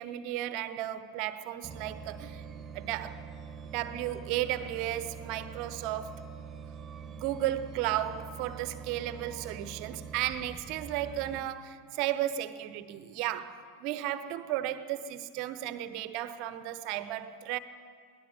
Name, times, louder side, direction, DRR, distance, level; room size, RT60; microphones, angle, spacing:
voice 1, 0.0-3.2 3.6-6.4 7.0-17.6, right 13 dB, 45° right, 1.1 m, -34 dB
sound 1, 1.6-11.4, right 6 dB, 20° right, 1.5 m, -44 dB
22.0 x 17.5 x 7.5 m
figure-of-eight pair, 90°, 0 cm